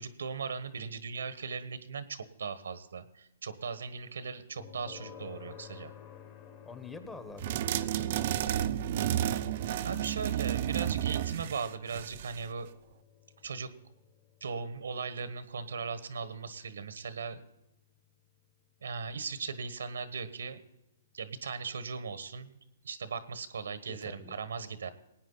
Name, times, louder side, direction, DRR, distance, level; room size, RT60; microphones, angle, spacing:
voice 1, 0.0-5.9 9.8-12.7 13.4-13.7 14.4-17.4 18.8-20.6 21.1-22.6 22.8-24.9, right 5 dB, 85° right, 13 dB, 1.2 m, -38 dB
sound 1, 4.6-19.5, left 10 dB, 35° left, 1.8 m, -54 dB
voice 2, 6.6-8.5 23.9-24.4, left 3 dB, 10° left, 9 dB, 1.2 m, -47 dB
sound 2, 7.4-12.4, right 11 dB, 50° right, 0.6 m, -31 dB
19.0 x 9.3 x 4.0 m, 0.91 s
hypercardioid pair, 145°, 0 cm